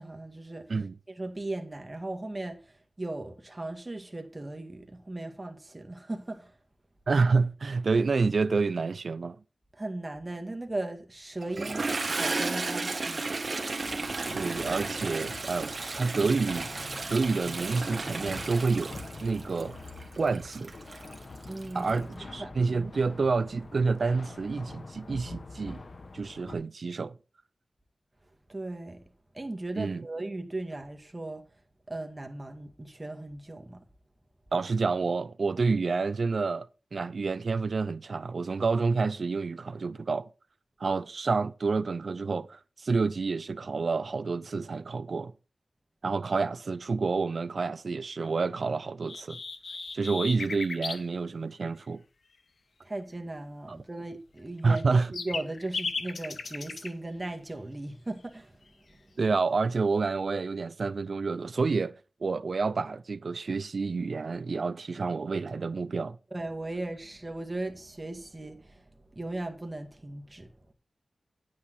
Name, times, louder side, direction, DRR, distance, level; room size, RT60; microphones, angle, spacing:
voice 1, 0.0-0.7 1.1-2.6 3.0-6.5 9.8-13.2 21.4-22.5 28.5-29.0 29.3-31.4 31.9-33.8 52.8-58.5 66.3-68.8 69.2-70.5, right 2 dB, 25° right, 2.0 m, -37 dB
voice 2, 7.1-9.4 14.3-16.7 17.1-19.0 19.2-19.8 20.2-20.7 21.7-25.8 26.1-27.2 29.8-30.1 34.5-40.3 40.8-45.3 46.0-49.4 49.9-52.0 53.7-53.8 54.6-55.1 59.2-61.9 62.2-66.2, right 4 dB, 70° right, 0.4 m, -28 dB
Toilet flush, 11.4-22.0, right 3 dB, 55° right, 1.8 m, -34 dB
sound 1, 13.8-26.6, left 3 dB, 60° left, 1.2 m, -45 dB
sound 2, 49.1-51.0 54.6-56.9, left 4 dB, 80° left, 1.0 m, -36 dB
9.7 x 8.7 x 4.0 m
wide cardioid pair, 60°, 0 cm